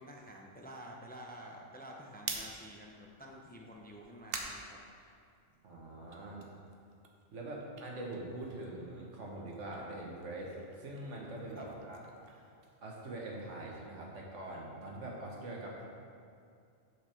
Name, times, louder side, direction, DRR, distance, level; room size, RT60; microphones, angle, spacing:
voice 1, 0.0-5.1 11.5-11.7, equal, 15° left, 0 dB, 0.4 m, -50 dB
sound 1, 2.2-5.6 6.0-8.9 9.2-13.3, right 5 dB, 55° right, 0.9 m, -47 dB
voice 2, 5.6-6.4 7.3-12.1 12.8-15.9, right 1 dB, 75° right, -2 dB, 1.6 m, -43 dB
6.8 x 6.5 x 4.4 m, 2.4 s
omnidirectional pair, 1.3 m